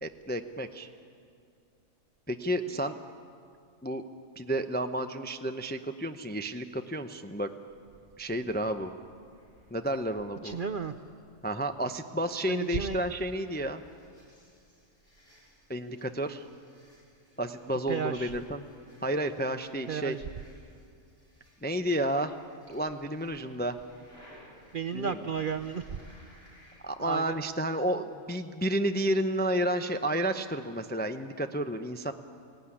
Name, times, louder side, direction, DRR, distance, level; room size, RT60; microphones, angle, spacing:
voice 1, 0.0-0.9 2.3-3.0 3.8-4.0 4.4-7.5 8.2-8.9 9.7-10.6 11.4-13.8 15.7-16.4 17.4-18.6 19.0-20.2 21.6-22.4 22.7-23.8 24.9-25.2 26.8-32.1, right 1 dB, 15° left, 8 dB, 0.4 m, -31 dB
sound 1, 7.7-26.8, equal, 45° left, 6.8 m, -60 dB
voice 2, 10.4-11.0 12.5-13.0 17.9-18.3 19.9-20.2 24.7-26.0 27.0-27.4, right 6 dB, 55° right, 8 dB, 0.6 m, -33 dB
18.0 x 18.0 x 9.8 m, 2.3 s
omnidirectional pair, 1.4 m